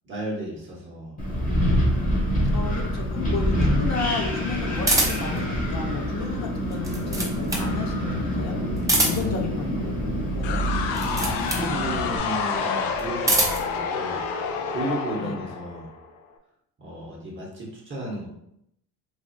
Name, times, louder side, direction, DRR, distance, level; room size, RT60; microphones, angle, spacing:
voice 1, 0.0-1.2 2.3-3.4 9.2-9.5 11.1-15.9 16.8-18.3, right 1 dB, 30° right, -4 dB, 0.9 m, -34 dB
Wind, 1.2-12.2, equal, 20° left, 0.9 m, -26 dB
voice 2, 2.5-8.6 9.0-9.9 10.2-10.6 15.2-15.4, left 4 dB, 45° left, 2 dB, 0.6 m, -33 dB
sound 1, 4.8-5.4 6.7-7.7 8.8-9.4 10.9-11.7 12.9-13.7, right 2 dB, 10° right, 0.6 m, -24 dB
sound 2, 10.4-16.2, left 5 dB, 90° left, 0.5 m, -29 dB
3.3 x 2.4 x 2.5 m, 0.76 s
cardioid pair, 110°, 40 cm